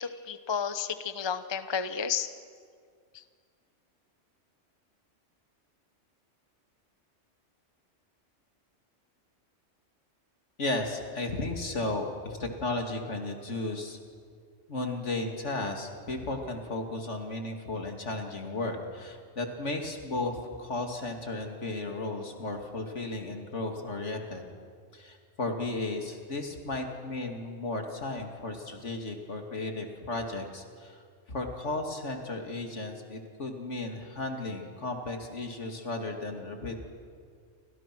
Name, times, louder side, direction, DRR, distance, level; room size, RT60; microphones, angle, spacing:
voice 1, 0.0-2.3 3.1-3.2, left 7 dB, 25° left, 11 dB, 0.9 m, -32 dB
voice 2, 10.6-14.0 14.7-24.4 24.9-36.8, left 2 dB, 70° left, 3 dB, 3.0 m, -34 dB
29.5 x 26.0 x 6.2 m, 2.1 s
omnidirectional pair, 1.3 m